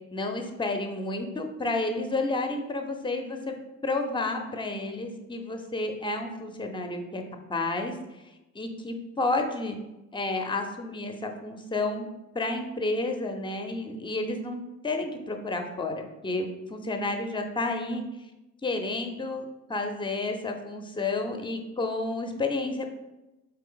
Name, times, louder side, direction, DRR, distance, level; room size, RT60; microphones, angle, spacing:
voice 1, 0.1-3.6 3.8-7.2 7.5-7.9 8.5-9.8 10.1-12.1 12.3-18.0 18.6-19.4 19.7-22.9, left 2 dB, 15° left, 4 dB, 0.6 m, -31 dB
3.8 x 3.3 x 3.8 m, 1.0 s
cardioid pair, 90°, 30 cm